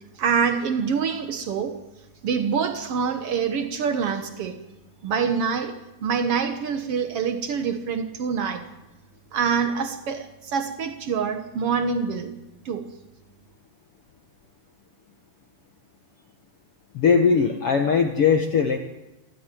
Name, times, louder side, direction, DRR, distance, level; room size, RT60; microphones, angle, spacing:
voice 1, 0.2-1.8 2.2-4.6 5.0-8.7 9.3-12.4 12.6-12.9, right 6 dB, 80° right, 1.3 m, -25 dB
voice 2, 16.9-18.8, left 6 dB, 65° left, 1.4 m, -20 dB
27.5 x 13.5 x 9.2 m
omnidirectional pair, 4.6 m